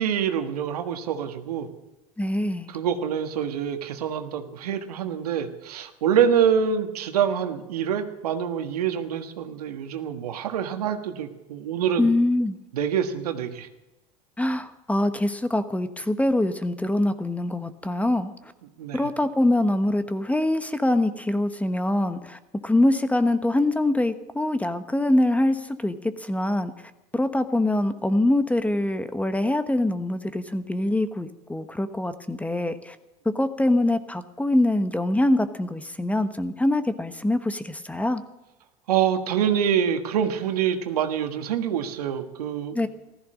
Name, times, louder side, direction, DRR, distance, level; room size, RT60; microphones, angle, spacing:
voice 1, 0.0-1.7 2.7-12.1 12.7-13.7 18.8-19.0 38.9-42.7, right 8 dB, 85° right, 7 dB, 1.5 m, -26 dB
voice 2, 2.2-2.7 12.0-12.6 14.4-18.3 18.9-26.7 27.1-33.0 33.2-38.2 42.7-42.9, left 1 dB, 5° left, 11 dB, 1.1 m, -24 dB
15.0 x 14.0 x 6.4 m, 1.0 s
hypercardioid pair, 90°, 19 cm